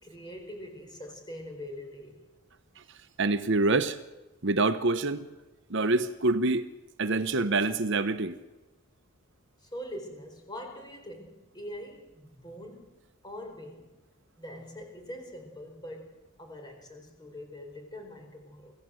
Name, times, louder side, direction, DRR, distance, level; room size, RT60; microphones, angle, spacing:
voice 1, 0.0-2.2 9.6-13.9 14.4-16.1 16.4-18.7, equal, 20° left, 4.7 m, -43 dB
voice 2, 3.2-4.0 4.4-5.3 5.7-6.6 7.0-8.4, right 3 dB, 60° right, 0.9 m, -26 dB
24.5 x 16.0 x 7.9 m
head